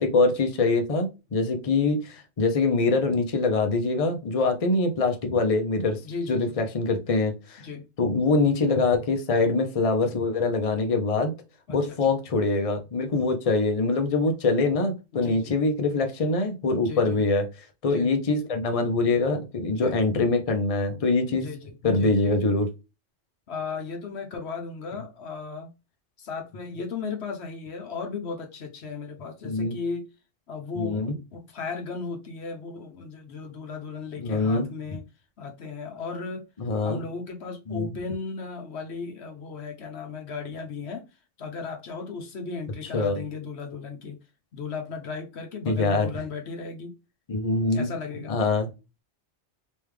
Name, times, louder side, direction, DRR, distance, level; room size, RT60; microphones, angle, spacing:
voice 1, 0.0-6.0 6.3-7.6 8.0-11.3 11.7-17.5 17.8-21.5 21.8-22.7 29.4-29.8 30.8-31.1 34.2-34.7 36.6-37.0 37.7-37.9 42.9-43.2 45.7-46.1 47.3-47.9 48.3-48.7, left 3 dB, 35° left, 0.7 m, -24 dB
voice 2, 6.0-6.6 7.6-7.9 11.7-12.2 15.1-15.6 16.8-17.2 17.9-18.1 19.7-20.0 20.9-22.3 23.5-25.7 26.2-30.1 30.5-35.0 35.4-36.4 36.8-41.1 41.4-44.2 44.5-46.9 47.7-48.4, left 4 dB, 65° left, 1.0 m, -36 dB
3.4 x 3.1 x 3.3 m
omnidirectional pair, 1.3 m